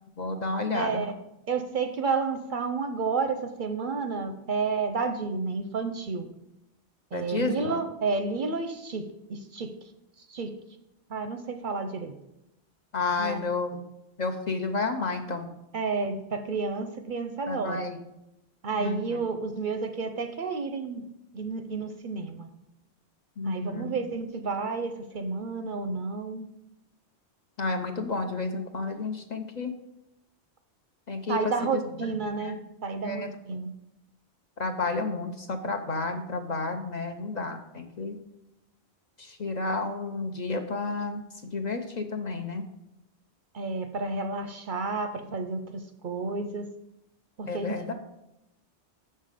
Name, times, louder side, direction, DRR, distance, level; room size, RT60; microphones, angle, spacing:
voice 1, 0.2-1.0 7.1-7.7 12.9-13.9 14.2-15.5 17.5-18.0 18.8-19.2 23.4-23.9 27.6-29.7 31.1-31.8 32.4-32.6 33.0-33.3 34.6-38.2 39.2-42.6 47.5-47.9, left 3 dB, 50° left, 5 dB, 0.6 m, -31 dB
voice 2, 0.7-1.1 1.5-6.3 7.1-9.7 10.3-10.5 11.1-12.1 13.2-13.4 15.7-17.9 18.6-21.0 21.3-22.5 23.4-26.5 31.3-32.6 32.8-33.7 43.5-46.7 47.4-47.8, right 4 dB, 55° right, 7 dB, 0.6 m, -31 dB
7.1 x 5.6 x 4.9 m, 0.88 s
omnidirectional pair, 1.1 m